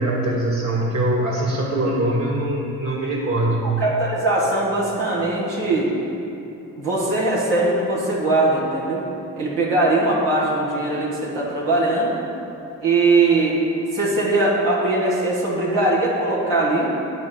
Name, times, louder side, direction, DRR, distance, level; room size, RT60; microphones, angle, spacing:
voice 1, 0.0-3.6, right 1 dB, 45° right, -6 dB, 2.1 m, -22 dB
voice 2, 3.6-5.9 6.8-9.0 9.4-12.2 12.8-13.6 13.9-16.9, right 2 dB, 85° right, -7 dB, 1.9 m, -20 dB
9.4 x 4.9 x 7.7 m, 2.8 s
supercardioid pair, 40°, 42 cm